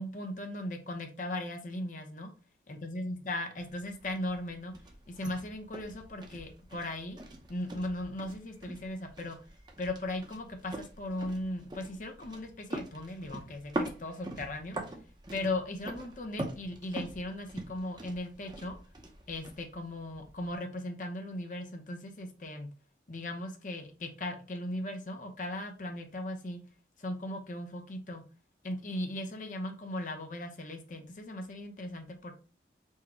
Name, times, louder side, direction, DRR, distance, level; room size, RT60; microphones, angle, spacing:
voice 1, 0.0-2.3 2.7-4.8 5.1-7.2 7.5-9.4 9.8-14.8 15.3-18.8 19.3-22.7 23.1-26.6 27.0-28.2 28.6-32.3, left 1 dB, 45° left, 5 dB, 0.8 m, -38 dB
sound 1, 3.6-20.6, right 1 dB, 25° right, 0.7 m, -43 dB
4.6 x 2.2 x 4.2 m, 0.34 s
head